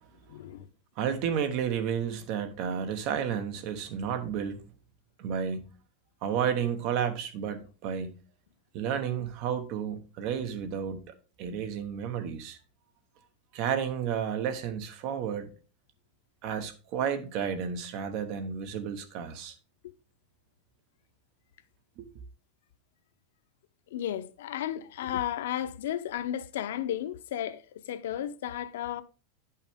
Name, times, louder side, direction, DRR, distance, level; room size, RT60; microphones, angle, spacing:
voice 1, 0.3-0.7 23.9-27.6 27.9-29.0, left 11 dB, 80° left, 0.6 m, -33 dB
voice 2, 1.0-4.6 5.2-5.6 6.2-8.1 8.7-11.0 11.4-12.6 13.5-15.5 16.4-19.6 22.0-22.1, right 8 dB, 40° right, 1.1 m, -31 dB
9.8 x 5.6 x 3.6 m
supercardioid pair, 170°, 0 cm